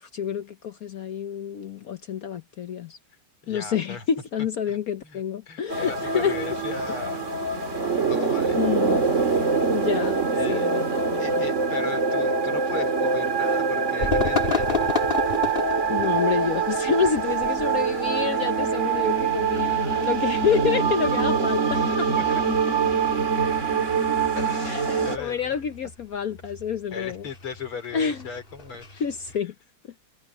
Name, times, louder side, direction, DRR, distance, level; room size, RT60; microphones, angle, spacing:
voice 1, 0.0-3.0 3.5-6.3 8.5-9.0 9.7-10.2 10.5-11.4 15.9-22.0 24.7-27.3 27.9-28.2 29.0-29.5, left 7 dB, 60° left, 1.0 m, -28 dB
voice 2, 3.4-4.0 4.7-4.8 5.0-7.3 8.1-8.6 10.3-10.7 11.2-14.8 17.0-17.1 21.7-22.4 24.3-25.5 26.9-29.0, left 5 dB, 85° left, 4.8 m, -37 dB
sound 1, 5.7-25.2, right 5 dB, 35° right, 2.4 m, -24 dB
sound 2, 14.0-29.4, left 5 dB, 25° left, 2.0 m, -34 dB
omnidirectional pair, 2.3 m